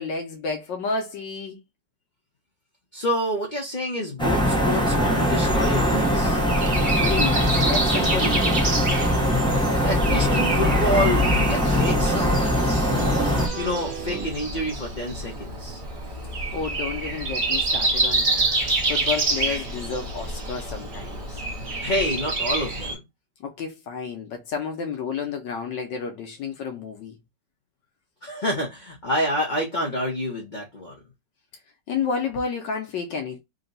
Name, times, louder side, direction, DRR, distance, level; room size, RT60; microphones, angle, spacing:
voice 1, 0.0-1.6 6.7-6.8 7.0-8.7 16.5-21.4 23.4-27.2 31.9-33.4, left 5 dB, 75° left, 1.3 m, -31 dB
voice 2, 2.9-6.4 9.8-12.9 13.6-15.8 21.8-23.0 28.2-31.0, left 1 dB, 40° left, 0.7 m, -28 dB
sound 1, 4.2-13.5, left 1 dB, 5° left, 0.5 m, -22 dB
sound 2, 4.8-14.2, right 6 dB, 80° right, 1.7 m, -34 dB
Breathing, 5.2-23.0, right 2 dB, 35° right, 0.8 m, -28 dB
3.9 x 2.2 x 3.9 m
omnidirectional pair, 2.0 m